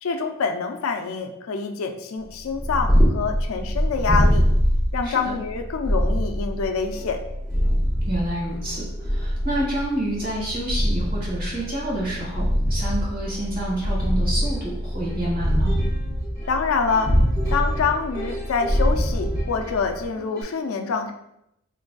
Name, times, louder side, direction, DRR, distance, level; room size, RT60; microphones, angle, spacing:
voice 1, 0.0-4.5 4.9-7.2 16.5-17.2 17.5-21.1, left 5 dB, 85° left, 5 dB, 0.4 m, -26 dB
Purr, 2.4-20.1, equal, ahead, 0.7 m, -23 dB
voice 2, 5.0-5.3 8.0-15.7, right 1 dB, 45° right, -5 dB, 1.4 m, -28 dB
Plucked string instrument, 6.6-6.7 6.9-20.4, right 1 dB, 20° right, 1.1 m, -42 dB
3.8 x 3.2 x 2.3 m, 0.80 s
head